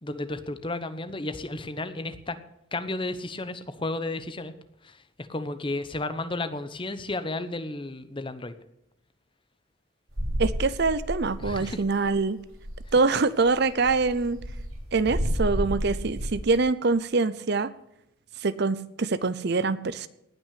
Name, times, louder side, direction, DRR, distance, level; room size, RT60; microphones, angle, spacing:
voice 1, 0.0-2.4 2.7-4.5 4.8-5.0 5.3-8.6 11.4-11.8, left 2 dB, 25° left, 11 dB, 0.9 m, -33 dB
sound 1, 10.1-11.8 12.0-12.2 12.4-12.9 13.4-16.5, equal, 85° right, 3.2 m, -31 dB
voice 2, 10.4-12.4 12.9-14.4 14.9-17.7 18.4-20.1, right 3 dB, 50° right, 15 dB, 0.6 m, -24 dB
18.5 x 6.2 x 8.4 m, 0.83 s
head